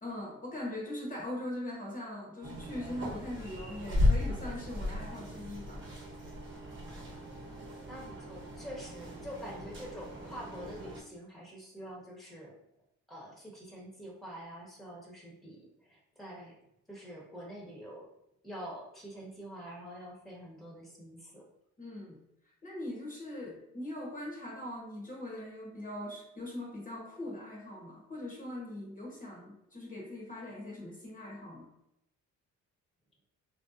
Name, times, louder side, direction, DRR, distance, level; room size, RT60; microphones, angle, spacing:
voice 1, 0.0-5.9 21.8-22.2 22.6-31.7, left 1 dB, 25° left, -2 dB, 0.9 m, -41 dB
sound 1, 2.4-11.0, left 2 dB, 40° right, 1.0 m, -35 dB
voice 2, 7.9-12.5 13.1-16.5 16.9-18.1 18.4-21.5, equal, ahead, -3 dB, 0.9 m, -46 dB
3.3 x 2.7 x 2.4 m, 0.82 s
cardioid pair, 90°, 30 cm